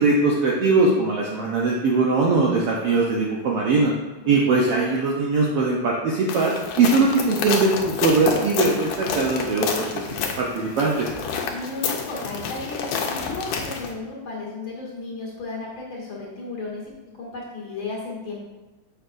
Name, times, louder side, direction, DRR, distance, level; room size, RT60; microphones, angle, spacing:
voice 1, 0.0-3.9 4.3-10.0 10.4-11.1, right 3 dB, 75° right, -2 dB, 1.4 m, -21 dB
voice 2, 2.5-2.8 4.5-4.7 11.5-18.4, left 3 dB, 50° left, -4 dB, 1.9 m, -34 dB
sound 1, 6.3-13.9, left 5 dB, 80° left, 2.0 m, -29 dB
7.4 x 5.6 x 2.5 m, 1.1 s
omnidirectional pair, 3.3 m